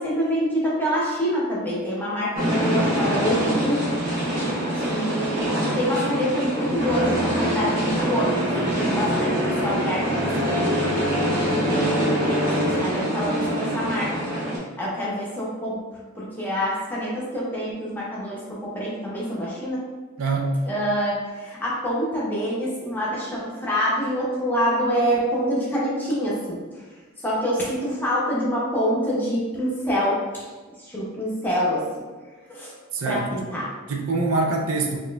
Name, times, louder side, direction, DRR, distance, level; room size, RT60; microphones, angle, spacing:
voice 1, 0.0-3.8 4.7-12.3 12.6-14.1 14.8-15.8 16.2-19.8 20.6-26.8 27.2-30.5 30.8-31.9 32.5-32.7 33.0-33.7, equal, 10° left, -6 dB, 0.7 m, -26 dB
sound 1, 2.4-14.6, equal, 40° right, 0.9 m, -24 dB
voice 2, 20.2-20.6 32.9-33.5 33.9-35.0, right 3 dB, 75° right, 2 dB, 0.4 m, -24 dB
4.1 x 2.4 x 2.2 m, 1.3 s
head